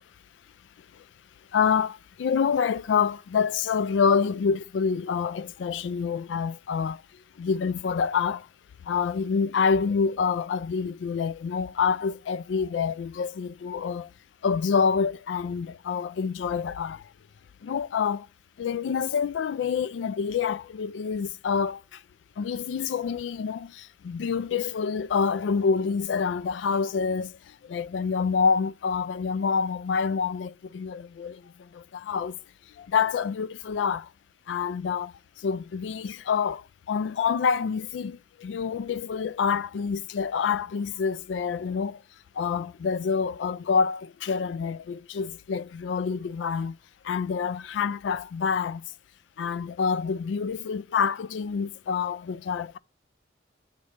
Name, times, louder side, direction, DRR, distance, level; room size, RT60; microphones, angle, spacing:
voice 1, 1.5-8.5 8.8-14.1 14.4-17.1 17.6-18.3 18.6-22.0 22.4-32.4 32.8-34.1 34.5-42.0 42.3-46.8 47.0-48.8 49.4-52.8, left 6 dB, 80° left, 0.3 m, -27 dB
8.0 x 3.2 x 6.4 m
head